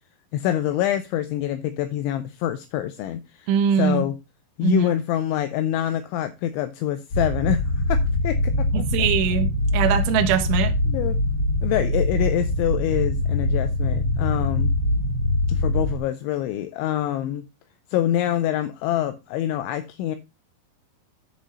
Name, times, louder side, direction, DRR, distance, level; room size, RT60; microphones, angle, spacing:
voice 1, 0.3-3.5 3.8-4.2 4.6-9.1 10.9-11.2 11.6-14.7 15.5-17.5 17.9-20.2, left 12 dB, 80° left, 2.8 m, -26 dB
voice 2, 3.5-4.0 4.6-4.9 8.7-10.7, right 8 dB, 80° right, 3.2 m, -22 dB
sound 1, 7.1-16.0, left 2 dB, 40° left, 1.4 m, -23 dB
10.0 x 5.3 x 5.3 m
omnidirectional pair, 5.8 m